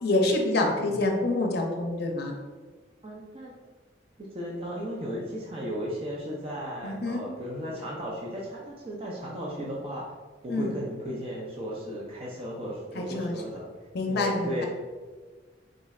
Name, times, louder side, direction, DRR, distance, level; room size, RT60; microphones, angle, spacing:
voice 1, 0.0-2.3 6.8-7.2 10.5-10.7 13.0-13.4 13.9-14.7, left 2 dB, 60° left, 2 dB, 0.5 m, -26 dB
voice 2, 3.0-3.5 4.2-10.0 10.4-13.6 14.1-14.7, equal, 35° right, -4 dB, 0.5 m, -35 dB
3.7 x 3.1 x 2.3 m, 1.4 s
head